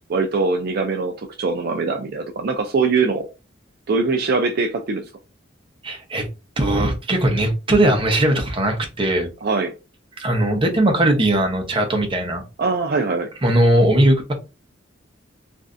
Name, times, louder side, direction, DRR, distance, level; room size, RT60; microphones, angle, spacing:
voice 1, 0.1-3.3 3.9-5.1 9.4-9.7 12.6-13.3, right 4 dB, 55° right, 0.4 m, -22 dB
voice 2, 5.8-6.3 6.6-9.3 10.2-12.4 13.4-14.3, right 1 dB, 25° right, 0.8 m, -19 dB
3.1 x 2.5 x 2.5 m
head